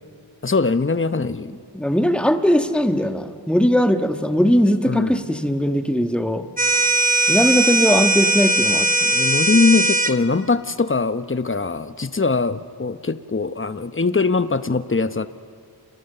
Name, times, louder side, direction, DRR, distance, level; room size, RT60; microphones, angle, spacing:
voice 1, 0.4-1.6 4.9-5.2 9.0-15.3, left 4 dB, 25° left, 12 dB, 0.9 m, -21 dB
voice 2, 1.7-6.5 7.3-8.9, equal, ahead, 7 dB, 1.5 m, -19 dB
sound 1, 6.6-10.2, right 2 dB, 20° right, 1.1 m, -19 dB
29.5 x 27.5 x 6.8 m, 2.5 s
wide cardioid pair, 50°, 46 cm